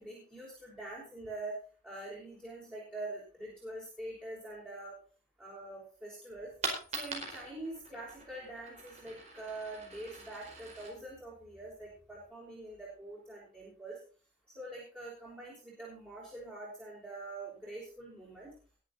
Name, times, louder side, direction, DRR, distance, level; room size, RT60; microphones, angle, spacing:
voice 1, 0.0-1.6 1.8-5.0 5.4-6.5 6.9-14.0 14.5-18.5, right 2 dB, 10° right, -6 dB, 5.7 m, -44 dB
Coin (dropping), 6.3-12.3, right 3 dB, 35° right, 4.8 m, -44 dB
21.5 x 7.6 x 4.2 m, 0.38 s
head